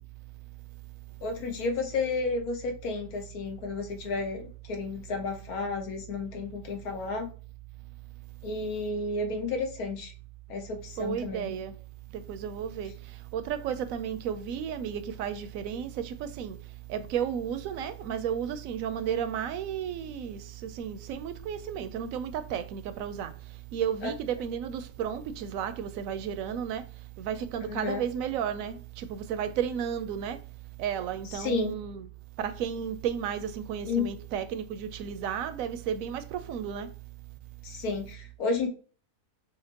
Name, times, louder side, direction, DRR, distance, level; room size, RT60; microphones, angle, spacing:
voice 1, 1.2-7.3 8.4-10.1 10.5-11.5 24.0-24.1 27.7-28.0 31.3-31.8 33.8-34.1 37.6-38.7, left 3 dB, 85° left, 1.4 m, -32 dB
voice 2, 11.0-11.7 12.1-12.9 13.3-16.6 16.9-23.3 23.7-26.8 27.2-30.4 30.8-32.1 32.4-36.9, right 8 dB, 75° right, 1.0 m, -33 dB
5.7 x 3.0 x 2.9 m
omnidirectional pair, 1.5 m